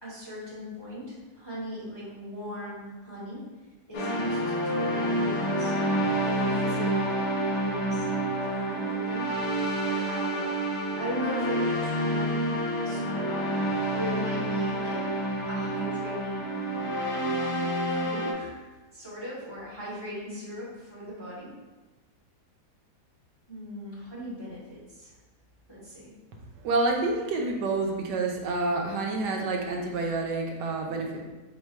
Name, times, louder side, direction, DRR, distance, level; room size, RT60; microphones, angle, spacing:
voice 1, 0.0-3.5 3.9-5.7 6.2-8.1 8.3-9.4 9.8-15.1 15.5-16.6 17.9-18.6 18.9-21.5 23.5-25.1 25.7-26.1, equal, 15° left, -9 dB, 1.1 m, -39 dB
sound 1, 3.9-18.3, right 1 dB, 55° left, 1.0 m, -28 dB
voice 2, 26.6-31.2, right 3 dB, 85° right, 1 dB, 1.3 m, -28 dB
4.4 x 2.1 x 4.5 m, 1.2 s
omnidirectional pair, 1.7 m